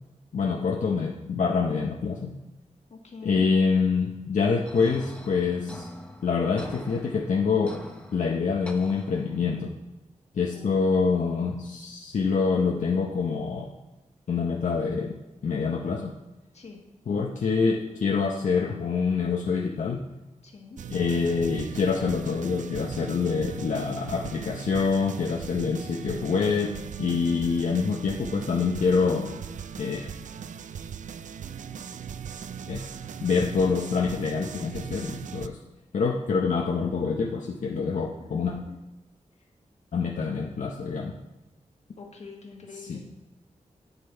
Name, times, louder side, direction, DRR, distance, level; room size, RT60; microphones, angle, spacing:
voice 1, 0.3-2.3 3.2-5.8 6.2-7.8 8.1-9.7 10.3-13.7 14.3-15.1 15.4-16.1 17.1-20.0 20.9-26.7 27.0-29.3 29.8-30.0 32.7-32.9 33.2-35.6 35.9-38.5 39.9-41.1 42.9-43.0, left 5 dB, 75° left, -1 dB, 0.8 m, -26 dB
voice 2, 2.9-3.5 10.5-11.7 16.5-16.8 20.4-20.8 40.0-40.4 42.0-43.1, left 4 dB, 60° left, 1 dB, 1.6 m, -46 dB
sound 1, 4.7-9.7, left 1 dB, 10° left, 0.9 m, -44 dB
sound 2, 20.8-35.5, right 7 dB, 80° right, 0.4 m, -39 dB
9.1 x 6.7 x 4.5 m, 1.0 s
wide cardioid pair, 130°, 13 cm